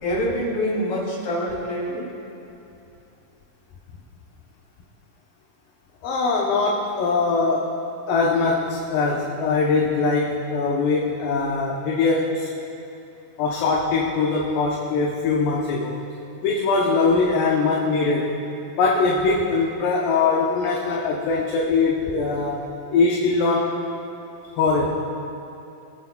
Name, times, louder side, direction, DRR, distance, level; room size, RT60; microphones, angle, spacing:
voice 1, 0.0-2.1 22.1-22.2, equal, 50° left, -6 dB, 3.7 m, -26 dB
voice 2, 6.0-7.7 8.1-12.5 13.4-16.0 16.4-18.3 18.7-23.8 24.6-25.0, left 4 dB, 75° left, -2 dB, 2.4 m, -22 dB
24.5 x 8.9 x 2.3 m, 2.8 s
omnidirectional pair, 4.2 m